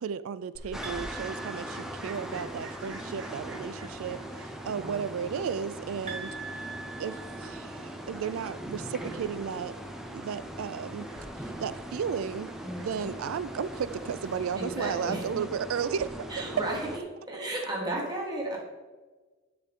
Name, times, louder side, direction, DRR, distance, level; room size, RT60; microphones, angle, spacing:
voice 1, 0.0-6.3 7.0-9.8 10.1-11.1 11.4-12.5 12.8-16.1, right 7 dB, 85° right, 16 dB, 0.4 m, -34 dB
Fowl, 0.5-14.4, right 2 dB, 60° right, 1.3 m, -51 dB
sound 1, 0.7-17.0, right 1 dB, ahead, 0.7 m, -40 dB
sound 2, 0.8-2.5 6.1-8.1, right 4 dB, 35° right, 1.6 m, -43 dB
voice 2, 4.7-5.2 12.6-13.1 14.6-15.4 16.3-17.0 17.3-18.6, right 1 dB, 20° right, -2 dB, 1.7 m, -34 dB
10.0 x 6.7 x 3.6 m, 1.3 s
head